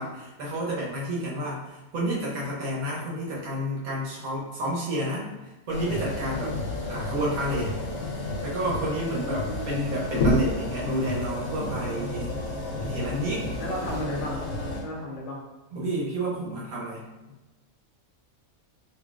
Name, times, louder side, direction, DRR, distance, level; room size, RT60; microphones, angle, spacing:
voice 1, 0.0-6.5 6.9-7.8 8.4-12.3 12.8-13.5 15.7-17.0, right 1 dB, 75° right, -4 dB, 1.4 m, -30 dB
sound 1, 5.7-14.8, left 2 dB, 70° left, 1.2 m, -31 dB
voice 2, 9.2-9.9 11.8-12.1 13.6-14.4 14.8-15.4, left 1 dB, 40° left, -3 dB, 0.5 m, -35 dB
3.9 x 3.0 x 2.3 m, 1.1 s
omnidirectional pair, 1.5 m